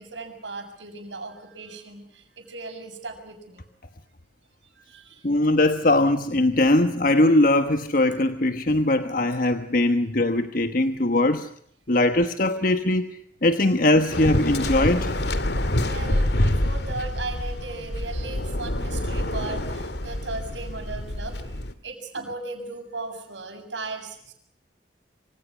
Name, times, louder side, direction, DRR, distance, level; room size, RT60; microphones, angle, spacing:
voice 1, 0.0-3.6 4.9-5.2 13.7-13.8 15.8-21.3 21.8-24.3, right 3 dB, 85° right, 7.5 m, -37 dB
voice 2, 5.2-11.5 11.9-13.2 13.4-15.2, left 1 dB, 50° left, 1.3 m, -21 dB
Waves surf, 14.1-21.7, left 1 dB, 65° left, 2.3 m, -26 dB
27.5 x 26.0 x 6.3 m
head